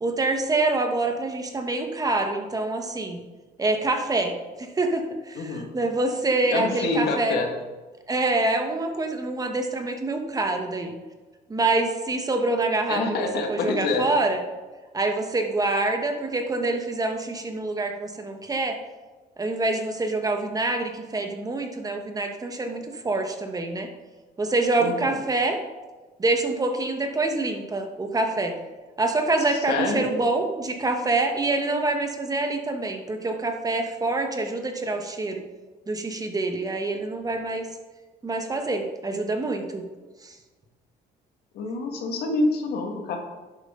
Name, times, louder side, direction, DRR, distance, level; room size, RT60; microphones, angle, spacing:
voice 1, 0.0-3.2 3.6-7.4 8.1-11.0 11.5-14.4 14.9-18.8 19.4-23.9 24.4-25.6 26.2-28.5 29.0-35.4 35.9-37.7 38.2-39.8 40.2-40.3, right 2 dB, 20° right, 4 dB, 1.3 m, -26 dB
voice 2, 5.4-5.7 6.5-7.5 12.9-14.1 24.8-25.2 29.5-30.1 41.5-43.2, left 3 dB, 70° left, 3 dB, 1.9 m, -26 dB
11.0 x 8.3 x 3.8 m, 1.3 s
cardioid pair, 110°, 17 cm